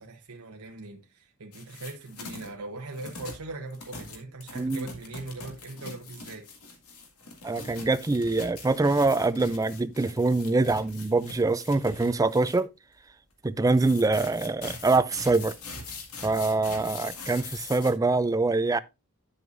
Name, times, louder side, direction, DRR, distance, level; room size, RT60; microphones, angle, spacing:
voice 1, 0.0-6.5, right 2 dB, 70° right, 1.0 m, -40 dB
sound 1, 1.5-2.5 2.9-12.6 13.7-17.9, left 3 dB, 85° left, 2.2 m, -43 dB
voice 2, 7.4-12.7 13.4-15.5 16.2-18.8, right 3 dB, 15° right, 0.4 m, -24 dB
9.7 x 7.7 x 2.6 m
head